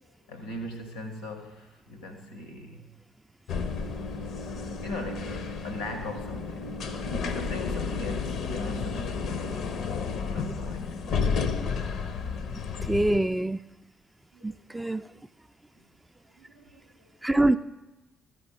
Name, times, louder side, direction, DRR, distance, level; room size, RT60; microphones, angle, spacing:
voice 1, 0.0-2.9 4.8-6.9 7.3-9.7 10.3-11.3 14.3-14.6 15.8-15.9 16.4-17.1 17.3-17.5, left 2 dB, 85° left, 7 dB, 0.9 m, -40 dB
sound 1, 3.5-13.2, left 5 dB, 60° left, 0.6 m, -32 dB
voice 2, 12.8-13.6 14.4-15.0 17.2-17.6, right 1 dB, 10° right, 10 dB, 0.3 m, -24 dB
13.0 x 7.6 x 4.7 m, 1.1 s
figure-of-eight pair, 40°, 0 cm